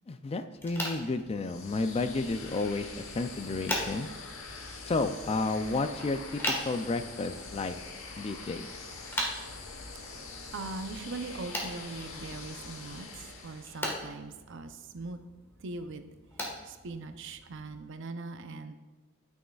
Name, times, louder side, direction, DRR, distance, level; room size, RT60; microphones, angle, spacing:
voice 1, 0.1-4.1 4.9-7.8 8.2-8.7, left 3 dB, 30° left, 9 dB, 0.3 m, -32 dB
sound 1, 0.5-17.8, equal, 10° left, 1.5 m, -41 dB
sound 2, 1.3-14.0, left 3 dB, 85° left, 1.1 m, -44 dB
voice 2, 10.2-15.2 15.6-16.2 16.6-18.8, right 3 dB, 65° right, 8 dB, 0.6 m, -41 dB
12.5 x 6.3 x 2.3 m, 1.2 s
head